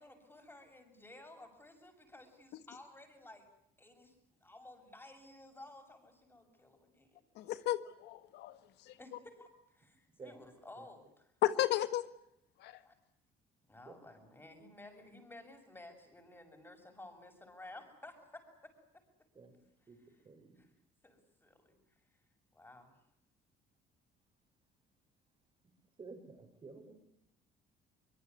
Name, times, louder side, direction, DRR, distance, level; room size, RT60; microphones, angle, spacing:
voice 1, 0.0-3.5 3.8-4.1 4.4-7.2 9.0-11.3 12.8-13.0 13.7-19.0 19.8-20.2 20.6-20.7 21.0-22.2 22.5-23.0, left 2 dB, 15° left, 5 dB, 7.5 m, -55 dB
voice 2, 7.4-8.6 8.9-9.0 11.4-12.0 12.6-12.7, left 14 dB, 85° left, 12 dB, 1.5 m, -33 dB
voice 3, 26.0-27.0, right 4 dB, 30° right, 7 dB, 5.9 m, -51 dB
24.0 x 22.0 x 9.7 m, 0.76 s
cardioid pair, 110°, 17 cm